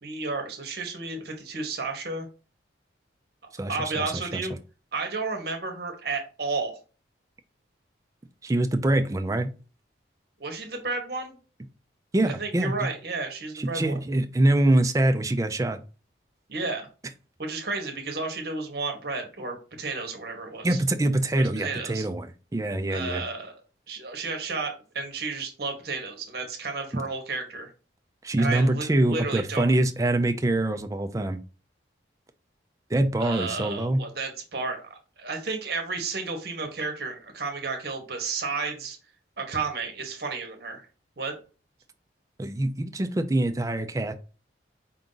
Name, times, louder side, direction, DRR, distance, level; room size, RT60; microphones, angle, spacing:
voice 1, 0.0-2.3 3.7-4.5 4.9-6.8 10.4-11.4 12.4-14.0 16.5-16.9 17.4-20.8 21.4-22.1 22.9-23.6 23.9-27.7 28.4-29.7 33.2-39.0 39.4-40.9 41.2-41.4, right 3 dB, 55° right, 3 dB, 0.9 m, -32 dB
voice 2, 3.6-4.4 8.4-9.5 12.1-12.7 13.5-15.8 20.6-23.2 26.9-27.0 28.2-31.4 32.9-34.0 42.4-44.1, right 1 dB, 15° right, 7 dB, 0.3 m, -24 dB
4.6 x 2.5 x 3.8 m, 0.35 s
head